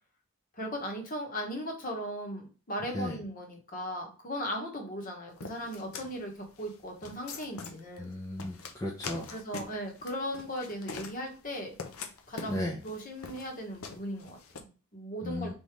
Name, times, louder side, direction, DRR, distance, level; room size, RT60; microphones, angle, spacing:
voice 1, 0.6-8.1 9.3-11.8 12.3-15.5, equal, 40° left, 2 dB, 1.3 m, -38 dB
sound 1, 5.4-14.6, left 4 dB, 85° left, 0.7 m, -44 dB
voice 2, 8.0-9.3 12.5-12.8 15.2-15.5, left 1 dB, 15° left, -3 dB, 0.7 m, -35 dB
3.9 x 3.7 x 3.2 m, 0.35 s
head